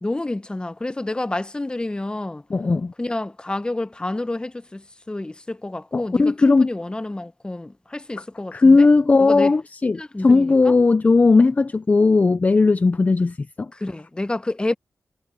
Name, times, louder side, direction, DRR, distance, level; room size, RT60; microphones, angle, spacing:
voice 1, 0.0-2.4 3.0-8.9 9.2-9.5 9.9-10.7 13.7-14.7, left 2 dB, 20° left, 1.0 m, -29 dB
voice 2, 2.5-2.9 5.9-6.7 8.5-13.7, left 3 dB, 35° left, 0.5 m, -17 dB
cardioid pair, 70°, 4 cm